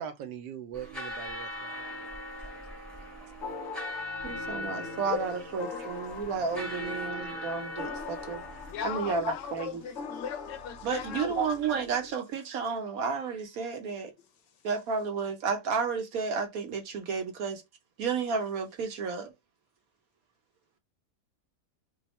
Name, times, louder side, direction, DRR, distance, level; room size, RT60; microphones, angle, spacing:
voice 1, 0.0-2.7 5.8-5.9 6.7-6.9, right 8 dB, 80° right, 1.3 m, -43 dB
sound 1, 0.7-8.7, left 1 dB, ahead, 1.1 m, -40 dB
sound 2, 3.4-12.1, left 4 dB, 55° left, 0.8 m, -43 dB
voice 2, 4.2-8.4 8.8-9.8 10.8-14.1 14.6-17.6 18.0-19.3, right 5 dB, 60° right, 1.1 m, -32 dB
voice 3, 8.7-11.5, left 8 dB, 85° left, 1.4 m, -37 dB
3.5 x 2.3 x 4.1 m
omnidirectional pair, 1.9 m